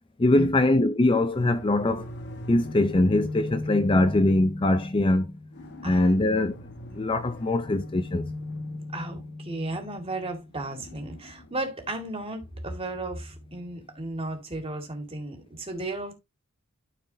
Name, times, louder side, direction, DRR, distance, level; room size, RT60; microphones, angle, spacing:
voice 1, 0.2-2.1 2.5-5.4 5.8-6.5 6.9-8.3, left 2 dB, 25° left, 0.5 m, -22 dB
sound 1, 1.3-14.1, left 2 dB, 55° left, 1.3 m, -39 dB
voice 2, 8.9-16.1, right 2 dB, 25° right, 2.2 m, -34 dB
12.5 x 4.6 x 2.7 m
head